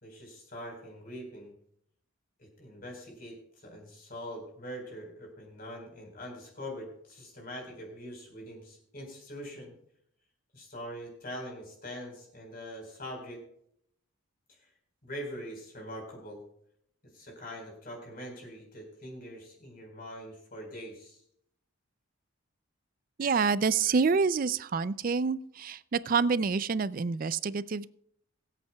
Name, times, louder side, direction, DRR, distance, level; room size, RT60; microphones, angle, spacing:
voice 1, 0.0-1.5 2.4-9.7 10.5-13.4 14.5-14.7 15.0-16.4 17.1-21.2, equal, 45° left, 1 dB, 4.4 m, -43 dB
voice 2, 23.2-27.9, right 5 dB, 40° right, 17 dB, 0.4 m, -27 dB
23.5 x 8.3 x 2.3 m, 0.69 s
head